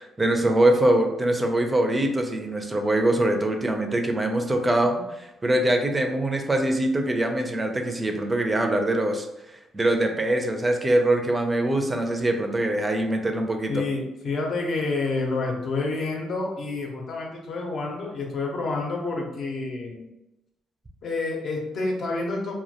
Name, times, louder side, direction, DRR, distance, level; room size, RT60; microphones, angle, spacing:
voice 1, 0.0-13.8, right 1 dB, 20° right, 4 dB, 0.4 m, -23 dB
voice 2, 13.7-20.1 21.0-22.5, left 3 dB, 60° left, 0 dB, 0.6 m, -28 dB
2.2 x 2.1 x 2.7 m, 0.94 s
cardioid pair, 90°, 0 cm